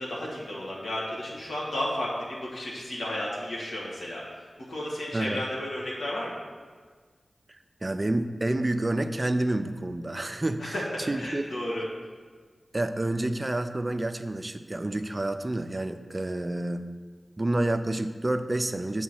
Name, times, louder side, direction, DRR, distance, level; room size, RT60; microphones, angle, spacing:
voice 1, 0.0-6.4 10.6-11.9, left 1 dB, 90° left, -6 dB, 1.4 m, -33 dB
voice 2, 7.8-11.4 12.7-16.9 17.4-19.0, right 1 dB, 30° right, 9 dB, 0.4 m, -29 dB
7.2 x 3.7 x 6.3 m, 1.5 s
wide cardioid pair, 80°, 0 cm